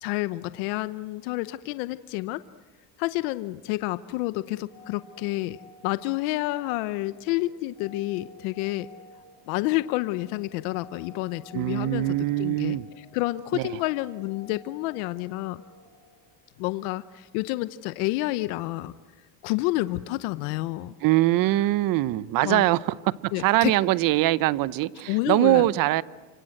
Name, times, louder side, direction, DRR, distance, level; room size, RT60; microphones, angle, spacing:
voice 1, 0.0-2.4 3.0-5.6 5.8-8.9 9.5-15.6 16.6-18.9 19.4-20.9 22.4-22.7 23.3-23.7 25.1-25.7, left 18 dB, 75° left, 0.9 m, -29 dB
sound 1, 4.3-17.1, left 1 dB, 25° right, 7.6 m, -52 dB
voice 2, 11.5-12.9 13.5-13.8 21.0-26.0, right 16 dB, 50° right, 0.8 m, -23 dB
29.0 x 26.0 x 7.9 m
cardioid pair, 135°, 44 cm